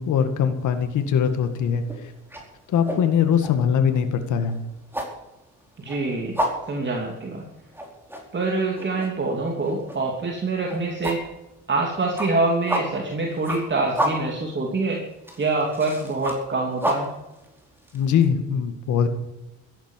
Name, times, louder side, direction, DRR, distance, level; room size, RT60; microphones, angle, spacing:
voice 1, 0.0-1.8 2.7-4.6 17.9-19.1, left 8 dB, 75° left, 7 dB, 2.0 m, -21 dB
sound 1, 0.7-1.0 1.3-18.3, equal, 5° right, 4.6 m, -31 dB
voice 2, 5.8-6.4 6.7-7.5 8.3-11.2 11.7-15.0 15.4-17.1, right 3 dB, 35° right, 0 dB, 3.1 m, -25 dB
14.0 x 11.0 x 7.5 m, 0.94 s
cardioid pair, 90°, 30 cm